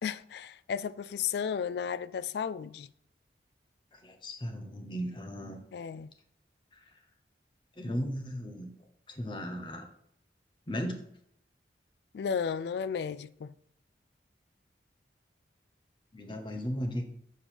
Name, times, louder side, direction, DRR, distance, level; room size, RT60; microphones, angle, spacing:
voice 1, 0.0-2.9 5.7-6.1 12.1-13.5, left 7 dB, 70° left, 0.3 m, -34 dB
voice 2, 3.9-5.6 6.7-6.8 7.8-8.7 9.1-9.9 10.7-11.0 16.1-17.1, equal, 25° left, 0.8 m, -36 dB
7.0 x 4.4 x 4.4 m
head